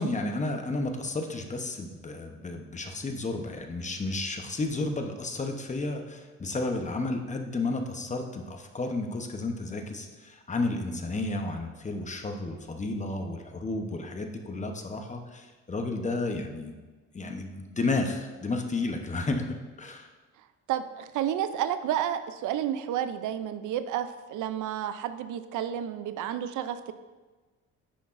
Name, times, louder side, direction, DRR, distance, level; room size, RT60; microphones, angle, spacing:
voice 1, 0.0-16.7 17.1-20.1, left 2 dB, 25° left, 4 dB, 0.9 m, -32 dB
voice 2, 20.7-26.9, right 10 dB, 80° right, 12 dB, 0.5 m, -31 dB
10.0 x 5.9 x 2.6 m, 1.3 s
cardioid pair, 90°, 30 cm